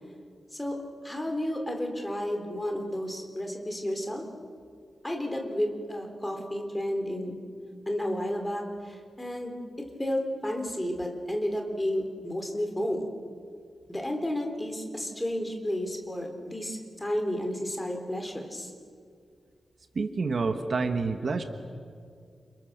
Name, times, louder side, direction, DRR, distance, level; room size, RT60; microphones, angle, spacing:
voice 1, 1.0-4.2 5.0-7.4 7.9-9.5 10.0-13.1 13.9-18.7, equal, 10° left, 3 dB, 3.6 m, -32 dB
voice 2, 19.9-21.4, right 4 dB, 50° right, 6 dB, 1.5 m, -28 dB
29.5 x 29.0 x 6.8 m, 2.2 s
wide cardioid pair, 140°, 0 cm